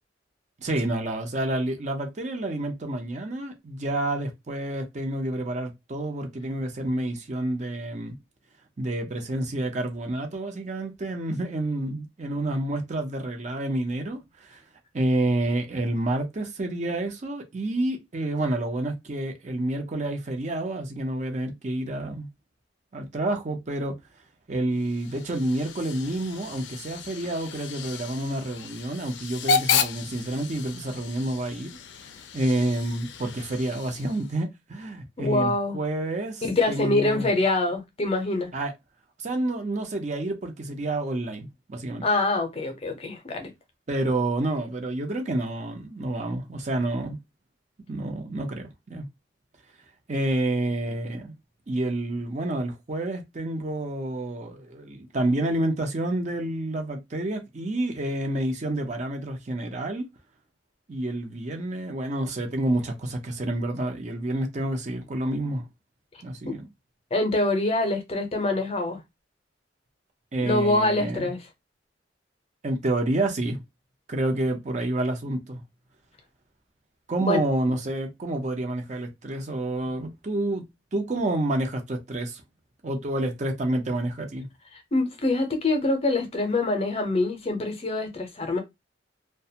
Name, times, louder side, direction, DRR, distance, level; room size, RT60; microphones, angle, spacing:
voice 1, 0.6-8.1 8.8-14.6 14.9-22.3 22.9-23.9 24.5-31.7 32.3-37.3 38.5-38.7 39.2-42.0 43.9-47.2 47.9-49.1 50.1-51.4 51.7-60.1 60.9-65.6 66.2-66.7 70.3-71.3 72.6-73.6 74.1-75.6 77.1-80.7 80.9-82.4 82.8-84.5, right 1 dB, 40° right, 0.6 m, -29 dB
Hiss / Train / Alarm, 24.8-34.4, left 5 dB, 70° left, 0.4 m, -32 dB
voice 2, 35.2-35.8 36.4-38.5 42.0-43.5 66.4-66.5 67.1-69.0 70.4-71.4 77.2-77.4 84.9-88.6, left 2 dB, 35° left, 0.6 m, -25 dB
2.4 x 2.2 x 2.7 m
head